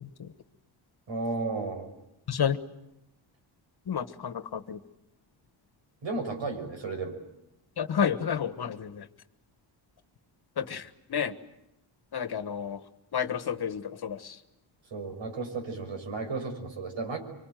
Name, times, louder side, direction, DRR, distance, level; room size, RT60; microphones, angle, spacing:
voice 1, 1.1-1.9 6.0-7.2 14.9-17.2, right 3 dB, 70° right, 5 dB, 6.3 m, -33 dB
voice 2, 3.9-4.8 7.8-9.0 10.6-10.8 11.1-11.3 12.1-12.8 13.1-14.3, left 8 dB, 55° left, 12 dB, 1.5 m, -30 dB
25.5 x 24.5 x 9.3 m, 0.88 s
cardioid pair, 100°, 47 cm